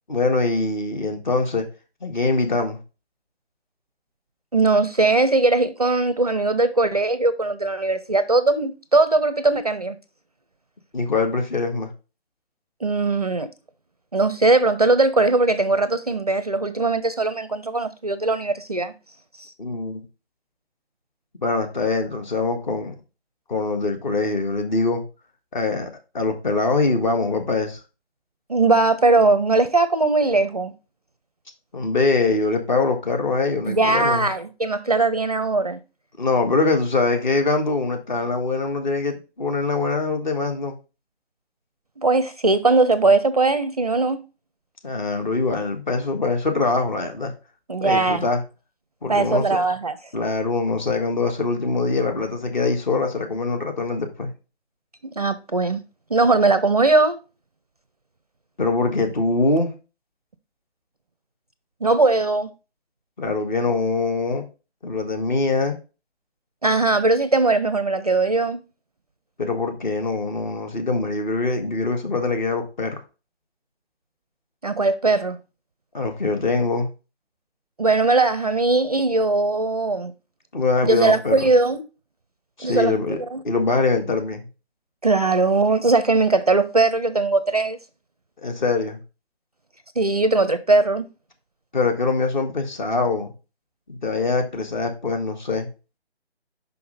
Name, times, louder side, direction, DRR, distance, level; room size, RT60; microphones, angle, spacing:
voice 1, 0.1-1.6 2.0-2.8 10.9-11.9 19.6-20.0 21.4-22.9 23.5-25.0 25.5-25.9 26.1-27.8 31.7-34.3 36.2-40.8 44.8-47.3 47.8-48.4 49.0-49.6 50.1-54.3 58.6-59.7 63.2-64.4 64.8-65.8 69.4-73.0 75.9-76.9 80.5-81.5 82.6-83.2 83.4-84.5 88.4-89.0 91.7-93.3 93.9-95.7, left 3 dB, 45° left, 1.7 m, -23 dB
voice 2, 4.5-10.0 12.8-13.5 14.1-18.9 19.4-19.5 28.5-30.7 33.6-35.8 42.0-44.2 47.7-48.2 49.1-50.0 55.0-55.8 56.1-57.2 61.8-62.5 66.6-68.6 74.6-75.4 77.8-80.1 80.8-81.8 82.6-83.4 85.0-87.8 90.0-91.1, right 3 dB, 35° right, 0.5 m, -20 dB
5.6 x 5.5 x 3.8 m
figure-of-eight pair, 155°, 33 cm